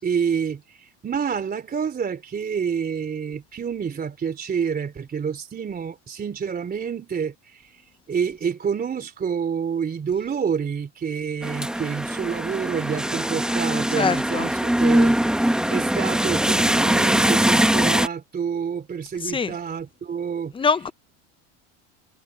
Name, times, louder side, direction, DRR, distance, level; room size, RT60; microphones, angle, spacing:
voice 1, 0.0-20.5, right 7 dB, 25° right, 3.4 m, -28 dB
sound 1, 11.4-18.1, right 1 dB, ahead, 1.0 m, -21 dB
voice 2, 14.0-14.5 19.2-19.5 20.5-20.9, left 5 dB, 15° left, 0.7 m, -23 dB
supercardioid pair, 120°, 36 cm